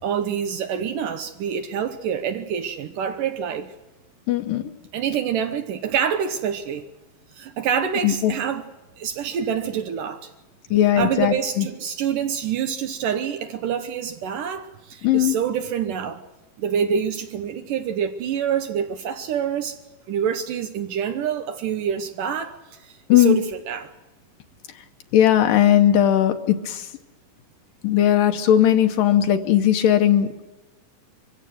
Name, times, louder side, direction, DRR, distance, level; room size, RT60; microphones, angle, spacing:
voice 1, 0.0-3.7 4.9-6.8 7.4-8.6 9.0-10.3 11.0-16.2 16.6-19.8 20.1-23.9, right 8 dB, 75° right, 2.6 m, -26 dB
voice 2, 4.3-4.6 8.0-8.3 10.7-11.7 15.0-15.4 23.1-23.4 25.1-26.9 27.8-30.4, left 11 dB, 80° left, 2.7 m, -18 dB
24.0 x 16.5 x 7.6 m
omnidirectional pair, 4.0 m